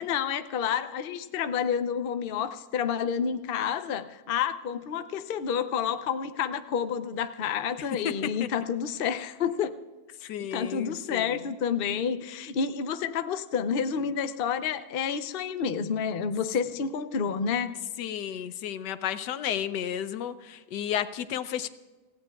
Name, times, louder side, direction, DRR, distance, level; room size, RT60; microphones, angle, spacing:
voice 1, 0.0-9.7 10.2-17.8, left 7 dB, 55° left, 10 dB, 0.6 m, -29 dB
voice 2, 8.0-8.5 10.3-11.4 18.0-21.7, left 9 dB, 90° left, 12 dB, 1.3 m, -32 dB
27.0 x 16.5 x 2.3 m, 1.2 s
omnidirectional pair, 1.8 m